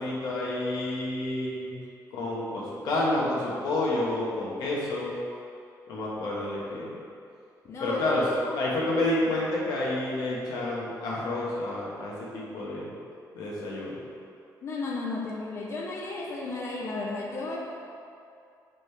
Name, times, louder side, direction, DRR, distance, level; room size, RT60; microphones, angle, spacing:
voice 1, 0.0-1.8 2.1-5.1 5.9-6.9 7.8-8.2 8.5-12.9 13.3-14.0, left 2 dB, 70° left, -5 dB, 1.2 m, -29 dB
voice 2, 7.6-8.0 8.5-8.6 14.6-17.6, left 3 dB, 40° left, -2 dB, 0.6 m, -33 dB
6.6 x 5.1 x 3.3 m, 2.4 s
cardioid pair, 175°, 7 cm